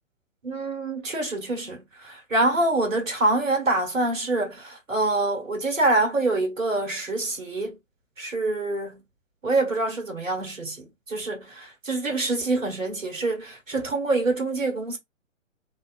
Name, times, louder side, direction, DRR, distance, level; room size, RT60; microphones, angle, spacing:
voice 1, 0.4-7.7 8.2-9.0 9.4-15.0, right 2 dB, 80° right, 1.4 m, -26 dB
3.1 x 2.4 x 2.4 m
figure-of-eight pair, 130°, 39 cm